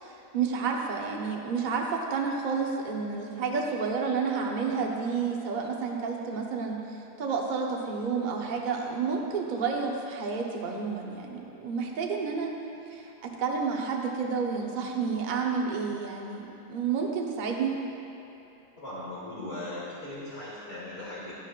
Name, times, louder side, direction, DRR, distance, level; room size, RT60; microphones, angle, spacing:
voice 1, 0.0-12.5 12.9-17.7, right 5 dB, 40° right, 0 dB, 0.7 m, -30 dB
voice 2, 18.8-21.3, left 1 dB, 40° left, -11 dB, 2.3 m, -38 dB
12.0 x 10.0 x 2.4 m, 2.9 s
omnidirectional pair, 1.7 m